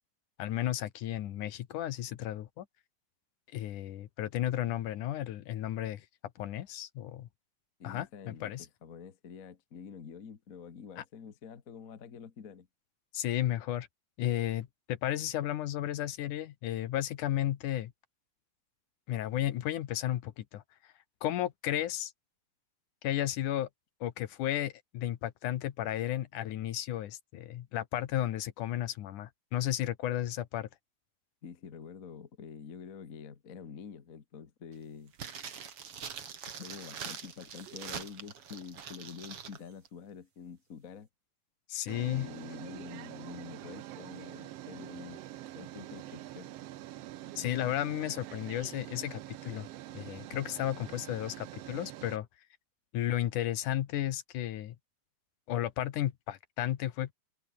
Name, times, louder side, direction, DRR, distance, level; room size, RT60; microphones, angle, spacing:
voice 1, 0.4-2.7 3.5-6.1 6.4-7.3 7.8-8.7 11.0-11.1 13.1-13.9 14.2-17.9 19.1-20.9 21.2-22.1 23.0-23.7 24.0-30.7 41.7-42.3 47.4-49.7 49.9-52.3 52.9-54.8 55.5-57.1, left 12 dB, 70° left, 2.5 m, -33 dB
voice 2, 7.8-12.7 31.4-35.1 36.6-41.1 42.1-45.2 45.5-46.5, left 6 dB, 35° left, 1.4 m, -47 dB
sound 1, 35.1-39.6 39.9-40.0, right 7 dB, 45° right, 2.9 m, -43 dB
sound 2, 37.5-38.0 39.7-39.8 41.9-52.2, right 14 dB, 75° right, 1.4 m, -45 dB
omnidirectional pair, 3.8 m